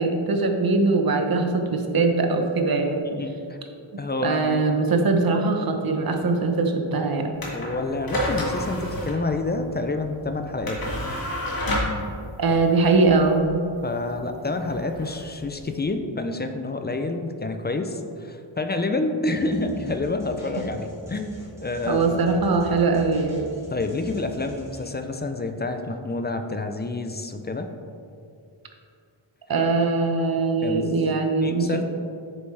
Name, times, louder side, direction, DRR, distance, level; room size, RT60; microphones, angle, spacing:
voice 1, 0.0-3.0 3.9-7.3 12.4-13.5 21.9-23.4 29.5-31.8, right 3 dB, 45° right, 4 dB, 0.8 m, -22 dB
voice 2, 3.1-3.6 4.0-4.9 7.5-10.8 13.8-22.2 23.7-27.7 30.6-30.9 31.4-31.8, left 2 dB, 25° left, 7 dB, 0.4 m, -28 dB
sound 1, 7.3-15.8, left 1 dB, 45° left, 1.7 m, -31 dB
sound 2, 19.3-24.8, left 1 dB, 5° right, 1.5 m, -43 dB
8.7 x 6.9 x 3.3 m, 2.5 s
wide cardioid pair, 170°, 48 cm